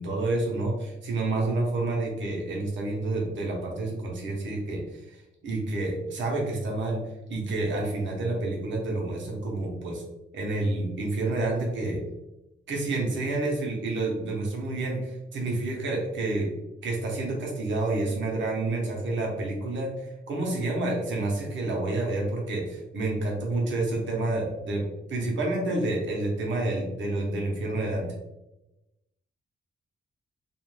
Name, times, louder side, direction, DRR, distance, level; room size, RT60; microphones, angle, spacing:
voice 1, 0.0-7.0 7.3-10.0 10.3-12.0 12.7-16.5 16.8-24.8 25.1-28.1, right 2 dB, 70° right, -1 dB, 0.8 m, -29 dB
2.5 x 2.1 x 3.1 m, 0.96 s
wide cardioid pair, 155°, 20 cm